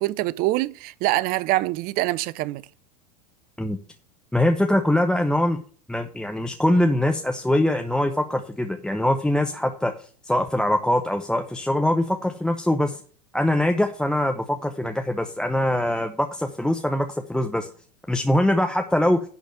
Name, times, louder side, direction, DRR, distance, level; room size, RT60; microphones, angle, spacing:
voice 1, 0.0-2.6, right 17 dB, 45° right, 0.6 m, -24 dB
voice 2, 4.3-5.6 5.9-13.0 13.3-17.7 18.1-19.2, left 1 dB, 5° left, 0.8 m, -23 dB
10.5 x 4.2 x 7.8 m
hypercardioid pair, 95°, 21 cm